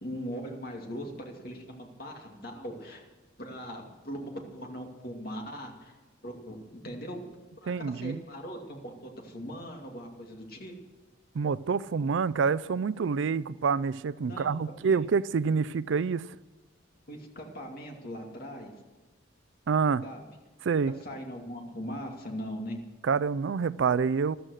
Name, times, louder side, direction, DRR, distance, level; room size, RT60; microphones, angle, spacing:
voice 1, 0.0-3.0 3.4-6.0 6.2-7.2 7.6-10.7 14.3-14.5 14.9-15.0 17.1-18.7 20.0-20.3 20.9-22.8, equal, 45° left, 2.5 m, -40 dB
voice 2, 7.7-8.2 11.3-16.2 19.7-20.0 20.6-20.9 23.0-24.4, right 5 dB, 70° right, 0.4 m, -27 dB
14.0 x 12.5 x 6.4 m
head